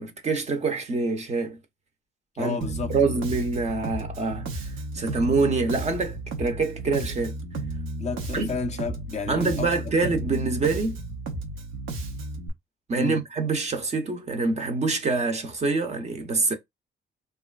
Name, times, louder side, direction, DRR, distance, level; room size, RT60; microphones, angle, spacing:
voice 1, 0.0-1.6 2.4-2.6 2.9-4.5 4.9-7.3 8.3-8.5 9.3-11.0 12.9-16.5, right 3 dB, 35° right, 0.6 m, -25 dB
voice 2, 2.3-3.2 8.0-10.0 12.9-13.2, left 4 dB, 35° left, 0.5 m, -32 dB
Bass guitar, 2.6-12.5, right 2 dB, 90° right, 0.7 m, -33 dB
2.9 x 2.3 x 2.3 m
cardioid pair, 90°, 20 cm